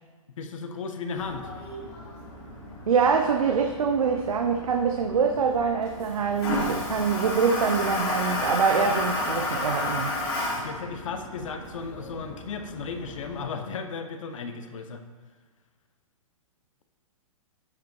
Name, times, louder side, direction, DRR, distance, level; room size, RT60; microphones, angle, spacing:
voice 1, 0.4-1.5 10.6-15.0, left 5 dB, 65° left, 7 dB, 0.9 m, -35 dB
Toilet flush, 1.2-13.4, left 2 dB, 45° left, 2.5 m, -33 dB
voice 2, 2.9-10.1, right 6 dB, 75° right, 4 dB, 0.7 m, -24 dB
13.0 x 5.1 x 3.1 m, 1.4 s
hypercardioid pair, 125°, 18 cm